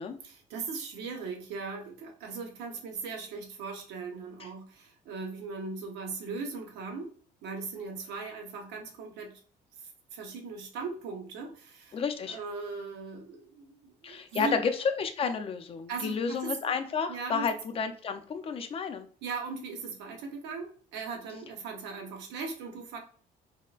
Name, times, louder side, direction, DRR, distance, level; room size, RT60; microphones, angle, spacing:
voice 1, 0.2-7.1 7.4-9.4 9.8-12.0 12.2-14.6 15.9-16.5 17.1-17.5 19.2-23.0, right 4 dB, 85° right, 3 dB, 0.8 m, -39 dB
voice 2, 11.9-12.4 14.0-19.1, left 5 dB, 35° left, 7 dB, 0.5 m, -31 dB
4.3 x 2.1 x 2.4 m, 0.43 s
cardioid pair, 110°, 17 cm